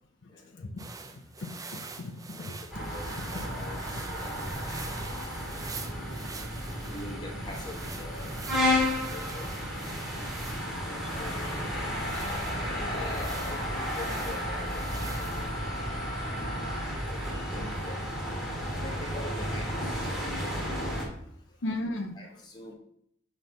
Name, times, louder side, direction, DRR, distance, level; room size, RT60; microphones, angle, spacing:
voice 1, 0.3-0.7 2.4-4.8 5.2-5.5 6.8-8.4 9.1-9.6 10.3-10.6 10.9-16.8 17.1-18.1 18.8-20.2 21.1-21.2 22.1-22.7, left 1 dB, 20° left, -1 dB, 1.3 m, -45 dB
sound 1, 0.8-15.6, right 4 dB, 20° right, 0.4 m, -45 dB
voice 2, 1.4-2.5 12.0-12.1 15.4-15.5 21.6-22.1, left 1 dB, 70° left, 3 dB, 0.6 m, -36 dB
sound 2, 2.7-21.1, left 1 dB, ahead, 1.5 m, -33 dB
sound 3, 11.8-16.8, left 1 dB, 55° right, 0.7 m, -42 dB
5.8 x 3.2 x 5.2 m, 0.72 s
head